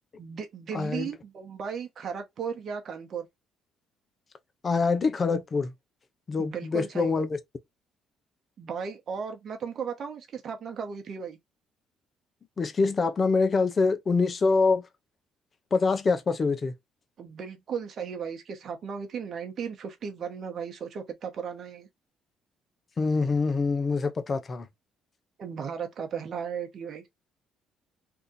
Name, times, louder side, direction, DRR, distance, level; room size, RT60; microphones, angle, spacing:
voice 1, 0.2-3.3 6.4-7.2 8.6-11.4 17.2-21.9 25.4-27.2, right 6 dB, 55° right, 1.0 m, -36 dB
voice 2, 0.7-1.1 4.6-5.7 6.3-7.4 12.6-14.8 15.7-16.7 23.0-24.7, left 4 dB, 40° left, 0.7 m, -25 dB
2.8 x 2.5 x 3.8 m
hypercardioid pair, 60°, 0 cm